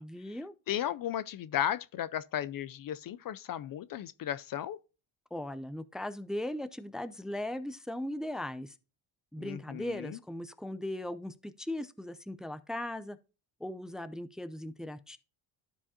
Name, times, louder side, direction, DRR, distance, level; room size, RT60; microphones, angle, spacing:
voice 1, 0.0-0.5 5.3-8.7 9.3-13.2 13.6-15.2, left 1 dB, ahead, 0.5 m, -38 dB
voice 2, 0.7-4.8 9.4-10.2, left 11 dB, 50° left, 0.5 m, -35 dB
12.5 x 4.8 x 2.8 m
cardioid pair, 80°, 46 cm